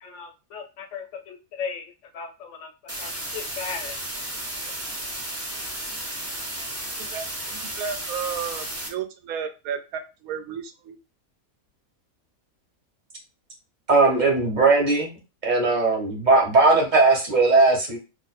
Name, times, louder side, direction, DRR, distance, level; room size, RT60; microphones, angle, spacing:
voice 1, 0.0-1.8 2.1-3.9, left 6 dB, 70° left, 5 dB, 0.8 m, -36 dB
sound 1, 2.9-8.9, right 1 dB, 15° right, 0.6 m, -33 dB
voice 2, 7.1-11.0, right 7 dB, 90° right, 8 dB, 1.1 m, -33 dB
voice 3, 13.9-15.2 15.4-18.0, right 3 dB, 35° right, 0 dB, 1.0 m, -18 dB
2.6 x 2.4 x 4.1 m, 0.29 s
omnidirectional pair, 1.5 m